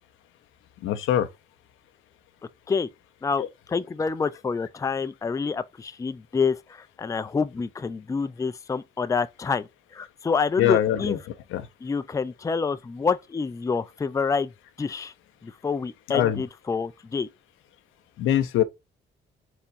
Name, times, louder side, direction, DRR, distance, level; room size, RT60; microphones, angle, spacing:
voice 1, 0.8-1.3 3.4-3.5 10.6-11.2 11.5-11.7 16.1-16.4 18.2-18.6, left 11 dB, 85° left, 0.7 m, -23 dB
voice 2, 3.2-11.2 11.8-14.5 14.8-15.1 15.4-17.3, left 5 dB, 15° left, 0.4 m, -27 dB
4.4 x 4.2 x 2.6 m
cardioid pair, 90°, 20 cm